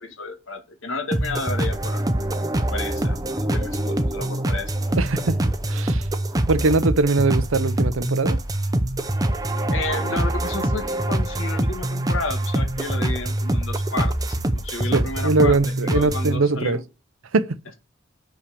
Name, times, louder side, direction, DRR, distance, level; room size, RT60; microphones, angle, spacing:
voice 1, 0.0-2.0 2.6-5.0 9.7-16.8, left 3 dB, 70° left, 1.9 m, -32 dB
sound 1, 1.1-16.4, right 1 dB, 20° right, 0.8 m, -24 dB
voice 2, 5.0-5.4 5.7-6.0 6.5-8.4 14.9-16.8 17.3-17.6, right 3 dB, 75° right, 0.7 m, -21 dB
6.5 x 5.8 x 6.8 m
head